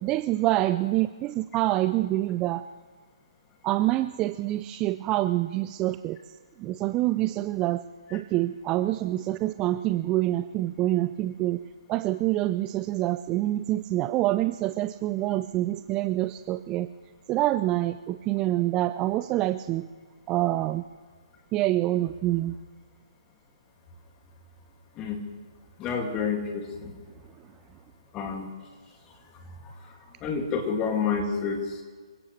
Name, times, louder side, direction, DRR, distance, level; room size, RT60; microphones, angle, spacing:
voice 1, 0.0-2.6 3.6-6.2 6.6-7.8 8.1-11.6 11.9-16.9 17.3-19.9 20.3-20.8 21.5-22.5, right 15 dB, 20° right, 12 dB, 0.4 m, -26 dB
voice 2, 25.8-26.9 28.1-28.5 30.2-31.8, left 5 dB, 20° left, 3 dB, 2.4 m, -29 dB
26.0 x 16.5 x 3.3 m, 1.5 s
figure-of-eight pair, 135°, 3 cm